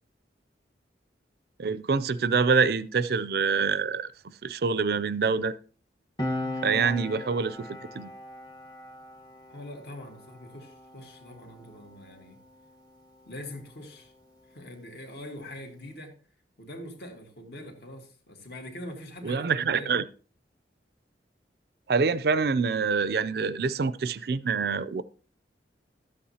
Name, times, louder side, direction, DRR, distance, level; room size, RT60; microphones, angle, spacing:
voice 1, 1.6-4.1 4.4-5.5 6.6-7.7 7.9-8.1 19.2-20.0 21.9-25.0, right 5 dB, 55° right, 0.4 m, -25 dB
Piano, 6.2-13.2 13.5-13.7, left 1 dB, 25° left, 1.1 m, -39 dB
voice 2, 9.5-12.4 13.3-14.1 14.5-16.1 16.6-19.9, left 1 dB, 60° left, 2.1 m, -43 dB
12.5 x 8.5 x 2.8 m
head